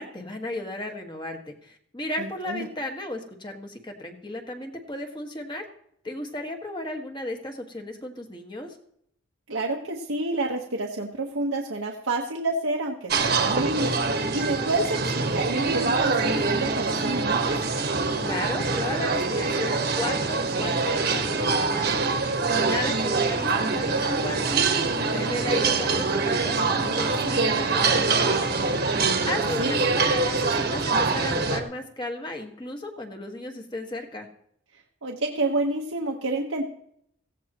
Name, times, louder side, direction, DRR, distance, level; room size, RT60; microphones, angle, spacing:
voice 1, 0.0-5.7 6.0-8.8 18.2-22.1 22.5-24.6 24.9-28.6 29.2-34.3, left 1 dB, 20° left, 3 dB, 1.7 m, -35 dB
voice 2, 2.2-2.7 9.5-17.6 29.6-29.7 35.0-36.7, right 2 dB, 80° right, -1 dB, 1.4 m, -29 dB
sound 1, 13.1-31.6, right 4 dB, 50° right, 1.5 m, -24 dB
17.0 x 16.0 x 3.1 m, 0.70 s
head